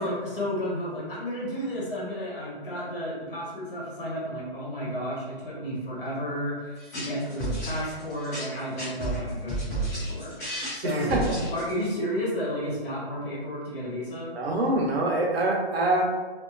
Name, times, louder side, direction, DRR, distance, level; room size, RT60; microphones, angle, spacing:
voice 1, 0.0-10.3 10.7-11.2 11.5-14.3, equal, 60° left, -5 dB, 1.5 m, -32 dB
sound 1, 6.8-11.9, right 1 dB, 15° left, 0.8 m, -32 dB
voice 2, 10.8-11.3 14.3-16.0, right 2 dB, 80° right, 0 dB, 0.8 m, -25 dB
2.8 x 2.3 x 2.5 m, 1.4 s
hypercardioid pair, 175°, 30 cm